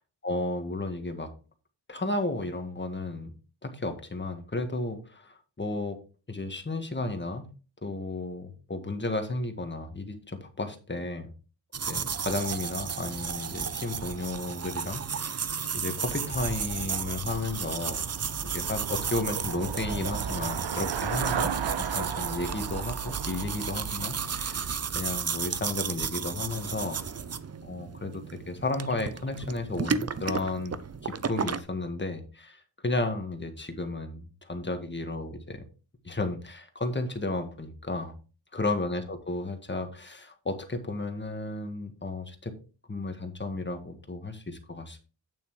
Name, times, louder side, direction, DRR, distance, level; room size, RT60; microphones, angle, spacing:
voice 1, 0.2-1.3 1.9-3.3 3.6-6.0 6.3-7.5 7.8-11.3 11.9-18.1 18.4-21.5 21.9-24.7 24.9-27.0 27.6-30.7 31.0-35.6 36.0-38.2 38.5-42.5 42.9-45.0, left 2 dB, 25° left, 7 dB, 1.6 m, -33 dB
sound 1, 11.7-31.6, right 6 dB, 35° right, 0.6 m, -33 dB
Traffic noise roadway noise / Bicycle, 16.2-25.4, right 7 dB, 65° right, 0.8 m, -36 dB
8.7 x 7.1 x 3.1 m, 0.35 s
cardioid pair, 70°, 46 cm